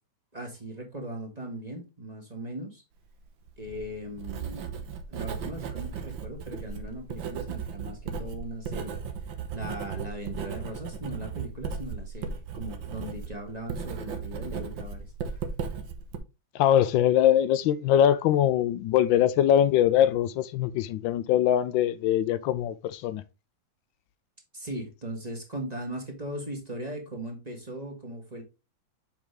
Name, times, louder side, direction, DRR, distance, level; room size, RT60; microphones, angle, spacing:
voice 1, 0.3-2.8 3.6-9.0 9.5-15.4 24.5-28.4, right 1 dB, 20° right, 1.9 m, -39 dB
Writing, 3.4-16.2, right 6 dB, 90° right, 1.8 m, -36 dB
voice 2, 16.5-23.2, left 10 dB, 85° left, 1.3 m, -22 dB
7.2 x 5.1 x 3.4 m
omnidirectional pair, 2.0 m